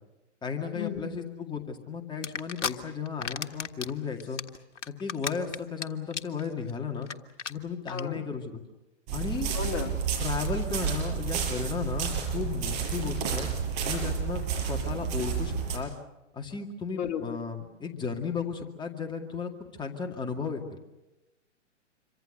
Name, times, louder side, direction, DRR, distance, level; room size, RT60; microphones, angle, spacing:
voice 1, 0.4-4.4 4.9-7.1 7.5-8.6 9.1-9.5 10.2-13.5 13.8-15.9 16.3-20.8, left 6 dB, 10° left, 3 dB, 2.2 m, -34 dB
sound 1, 2.2-2.7 3.1-3.9 4.2-5.8 6.1-6.4 6.7-6.8 7.0-7.1 7.4-7.5 7.9-8.0, left 6 dB, 70° left, 1.6 m, -33 dB
voice 2, 7.9-8.2 9.5-9.9 12.9-13.1 16.9-17.4, left 7 dB, 30° left, 1 dB, 3.0 m, -34 dB
sound 2, 9.1-15.8, right 7 dB, 35° right, 6.0 m, -31 dB
27.0 x 24.5 x 6.7 m, 0.99 s
figure-of-eight pair, 125°, 37 cm